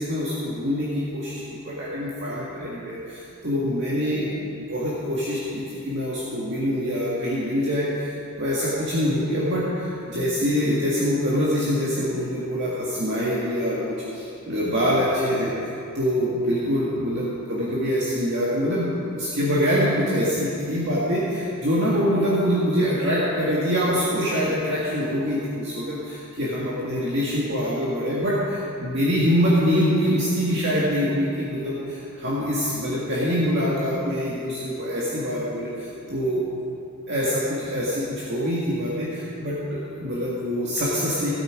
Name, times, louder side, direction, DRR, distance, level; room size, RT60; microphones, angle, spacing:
voice 1, 0.0-4.3 4.7-15.5 15.9-36.4 37.1-41.3, equal, 55° right, -7 dB, 1.9 m, -24 dB
17.0 x 8.4 x 5.1 m, 2.8 s
head